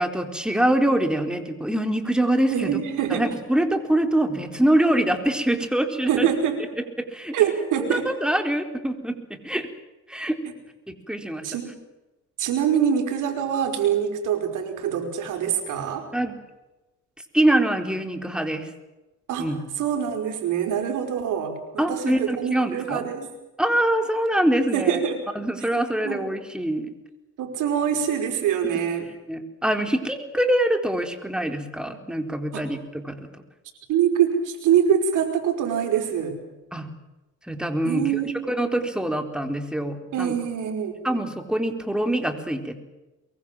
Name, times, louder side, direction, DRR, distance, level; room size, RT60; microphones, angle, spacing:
voice 1, 0.0-2.8 3.1-6.3 7.0-7.3 7.8-9.7 10.1-10.4 10.9-11.5 16.1-16.4 17.3-18.7 19.4-19.6 21.8-23.1 23.6-25.0 25.3-26.9 29.3-33.3 36.7-36.9 37.4-38.1 38.5-40.3 41.0-42.7, right 1 dB, 5° right, 6 dB, 4.2 m, -24 dB
voice 2, 2.5-3.3 6.1-6.6 7.3-8.1 11.4-11.8 12.4-16.1 19.3-23.3 24.7-25.2 26.0-26.3 27.4-29.1 32.5-32.7 33.9-36.4 37.8-38.4 38.7-38.9 40.1-41.0, right 8 dB, 85° right, 6 dB, 5.2 m, -24 dB
23.5 x 23.0 x 7.6 m, 1.0 s
cardioid pair, 90°, 30 cm